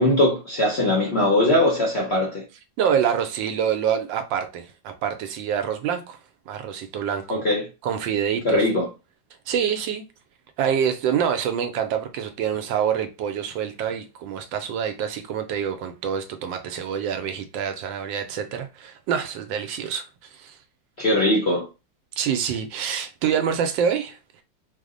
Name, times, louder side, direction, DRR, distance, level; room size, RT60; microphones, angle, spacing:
voice 1, 0.0-2.4 7.3-7.7 8.4-8.9 21.0-21.7, left 1 dB, 60° left, 0.7 m, -20 dB
voice 2, 2.8-6.2 6.5-7.4 7.8-8.7 9.5-10.0 10.6-20.5 22.2-24.2, right 8 dB, 80° right, 1.3 m, -26 dB
3.3 x 2.0 x 3.7 m
omnidirectional pair, 2.0 m